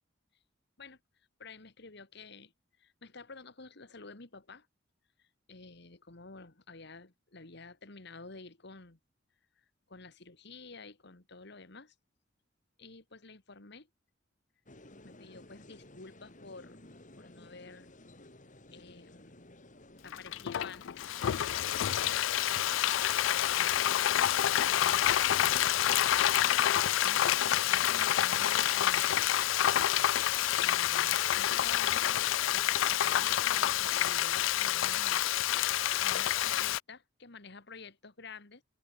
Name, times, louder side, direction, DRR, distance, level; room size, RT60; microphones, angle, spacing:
voice 1, 1.4-2.5 2.8-4.7 5.2-9.0 9.9-11.9 12.8-13.9 15.0-16.8 17.2-17.9 18.7-19.4 20.0-21.8 22.1-22.7 23.2-26.0 27.0-29.3 30.6-35.3 35.7-38.6, left 4 dB, 60° left, 2.1 m, -50 dB
sound 1, 14.7-34.0, left 1 dB, 45° left, 4.5 m, -57 dB
Frying (food), 20.1-36.8, left 12 dB, 80° left, 0.4 m, -28 dB
head